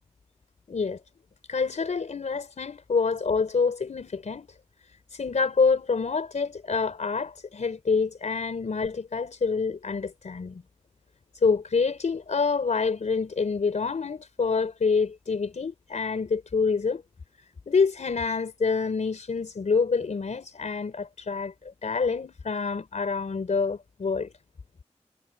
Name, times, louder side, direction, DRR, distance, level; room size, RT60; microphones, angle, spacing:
voice 1, 0.7-1.0 1.5-4.5 5.1-10.6 11.4-17.0 17.7-24.3, left 5 dB, 85° left, 3.9 m, -27 dB
wide cardioid pair, 50°, 12 cm